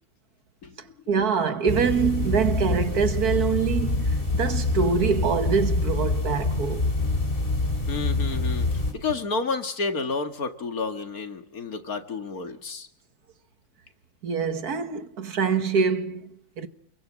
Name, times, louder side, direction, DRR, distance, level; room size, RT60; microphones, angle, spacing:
voice 1, 1.1-6.9 14.2-16.7, right 6 dB, 75° right, 2.0 m, -25 dB
sound 1, 1.7-8.9, left 2 dB, 35° left, 3.8 m, -26 dB
voice 2, 7.9-8.7 8.9-12.9, left 4 dB, 65° left, 2.4 m, -30 dB
29.0 x 22.5 x 7.5 m
omnidirectional pair, 1.7 m